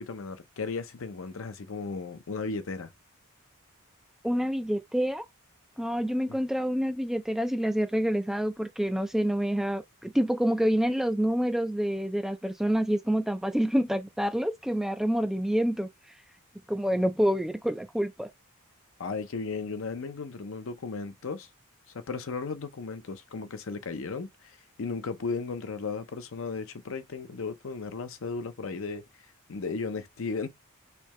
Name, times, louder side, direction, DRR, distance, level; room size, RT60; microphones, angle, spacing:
voice 1, 0.0-2.9 6.3-6.4 19.0-21.5 21.9-29.0 29.5-30.5, left 4 dB, 65° left, 0.6 m, -35 dB
voice 2, 4.2-5.2 5.8-15.9 16.7-18.3, equal, ahead, 0.3 m, -27 dB
3.3 x 2.7 x 3.0 m
head